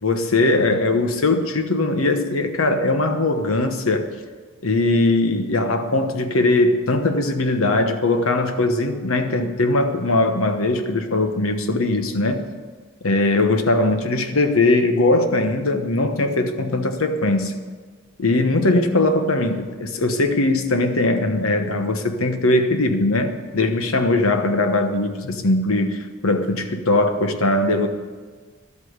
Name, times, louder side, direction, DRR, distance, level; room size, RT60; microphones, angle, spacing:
voice 1, 0.0-4.1 4.6-12.4 13.0-17.6 18.2-27.9, left 2 dB, 80° left, 7 dB, 1.2 m, -20 dB
11.5 x 8.3 x 8.1 m, 1.5 s
head